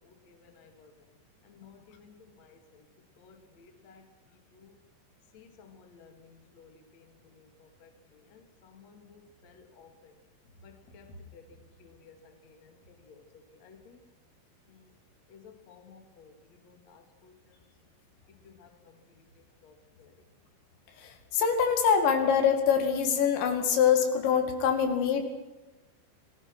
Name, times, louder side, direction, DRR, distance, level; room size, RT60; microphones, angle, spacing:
voice 1, 0.3-0.9 1.6-2.1 2.4-2.6 3.2-4.0 5.3-6.1 6.6-6.7 7.8-7.9 8.3-9.9 10.6-11.4 11.8-12.2 12.4-12.7 13.1-13.2 13.6-14.0 15.3-15.4 15.7-16.3 16.6-17.3 18.6-18.7 19.6-19.7, left 5 dB, 40° left, 5 dB, 3.4 m, -54 dB
voice 2, 21.3-25.2, left 7 dB, 75° left, 6 dB, 4.5 m, -24 dB
28.0 x 20.0 x 6.3 m, 1.1 s
omnidirectional pair, 5.3 m